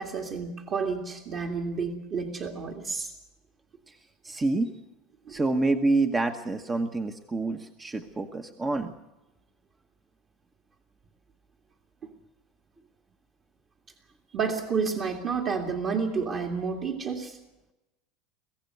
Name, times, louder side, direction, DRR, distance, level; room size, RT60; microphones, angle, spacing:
voice 1, 0.0-3.1 5.3-5.4 14.3-17.4, right 5 dB, 35° right, 0 dB, 2.3 m, -30 dB
voice 2, 4.2-4.7 5.3-8.9, right 2 dB, 15° right, 7 dB, 1.2 m, -27 dB
24.0 x 16.0 x 7.9 m, 0.97 s
supercardioid pair, 145°, 0 cm